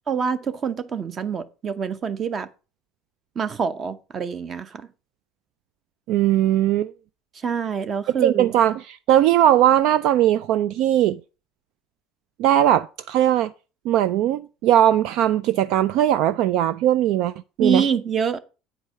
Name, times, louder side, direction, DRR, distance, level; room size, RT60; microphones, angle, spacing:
voice 1, 0.1-2.5 3.4-4.9 7.3-8.5 17.6-18.4, right 6 dB, 30° right, 0.7 m, -26 dB
voice 2, 6.1-6.9 8.2-11.2 12.4-13.5 13.9-17.3 17.6-17.8, right 12 dB, 60° right, 0.3 m, -19 dB
8.9 x 4.7 x 5.6 m
cardioid pair, 145°, 0 cm